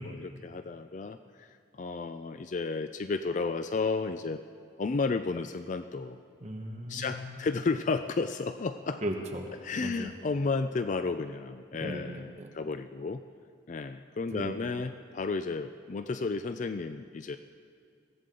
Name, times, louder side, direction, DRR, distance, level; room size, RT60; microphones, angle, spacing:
voice 1, 0.0-4.4 4.8-6.2 6.9-9.0 9.6-13.2 13.7-17.4, left 4 dB, 40° left, 10 dB, 0.4 m, -32 dB
voice 2, 6.4-7.4 9.0-9.5 9.8-10.1 11.8-12.5 14.3-14.5, right 1 dB, 35° right, 2 dB, 1.3 m, -37 dB
23.0 x 16.0 x 3.9 m, 2.2 s
head